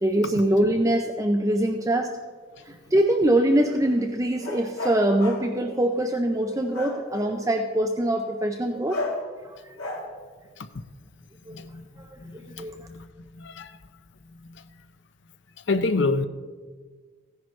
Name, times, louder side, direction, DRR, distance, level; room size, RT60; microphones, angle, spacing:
voice 1, 0.0-2.1 2.7-9.3 11.5-11.6 12.6-12.8, right 1 dB, 15° right, 4 dB, 0.4 m, -23 dB
sound 1, 3.8-5.5 6.6-7.4 8.9-9.3 9.8-10.1, left 2 dB, 85° left, 2.0 m, -34 dB
voice 2, 11.5-11.8 12.2-12.6 12.9-13.0 13.3-13.8 15.7-16.3, left 3 dB, 55° left, 11 dB, 0.6 m, -27 dB
15.0 x 10.5 x 3.2 m, 1.5 s
head